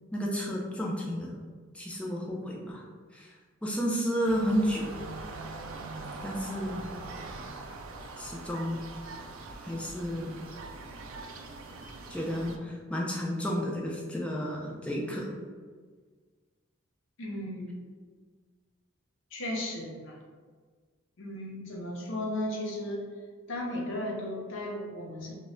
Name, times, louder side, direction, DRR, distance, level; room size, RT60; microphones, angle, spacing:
voice 1, 0.1-1.4 1.7-2.8 3.1-3.3 3.6-5.0 6.2-6.8 8.2-8.8 9.6-10.4 12.1-15.3, equal, 5° left, -3 dB, 0.3 m, -31 dB
sound 1, 4.2-12.6, right 3 dB, 75° right, 0.3 m, -42 dB
voice 2, 17.2-17.7 19.3-20.2 21.2-23.0 23.5-25.3, left 1 dB, 65° left, -1 dB, 0.5 m, -35 dB
2.1 x 2.1 x 3.6 m, 1.5 s
head